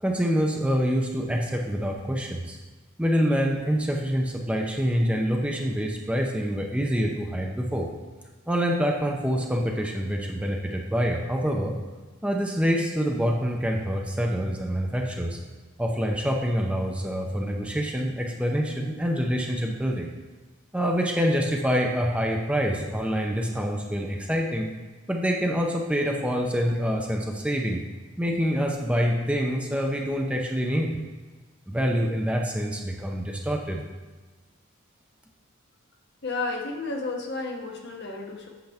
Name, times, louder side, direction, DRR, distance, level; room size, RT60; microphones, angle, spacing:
voice 1, 0.0-2.6 3.0-7.9 8.5-11.8 12.2-15.4 15.8-20.1 20.7-24.7 25.1-27.8 28.2-31.0 31.7-33.8, equal, 5° right, 1 dB, 0.5 m, -26 dB
voice 2, 36.2-38.5, left 3 dB, 55° left, 1 dB, 1.0 m, -32 dB
7.9 x 6.6 x 3.5 m, 1.3 s
head